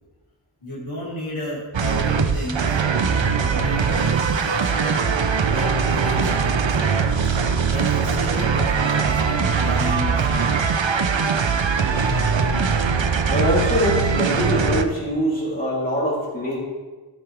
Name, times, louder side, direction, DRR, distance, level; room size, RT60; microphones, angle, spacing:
voice 1, 0.6-2.8 3.4-4.2 4.6-6.8 7.6-10.7, equal, 85° left, -7 dB, 3.8 m, -32 dB
sound 1, 1.7-14.8, right 5 dB, 70° right, 0.8 m, -21 dB
voice 2, 13.3-16.6, equal, 20° left, -6 dB, 3.8 m, -23 dB
13.0 x 9.3 x 3.5 m, 1.3 s
wide cardioid pair, 45°, 46 cm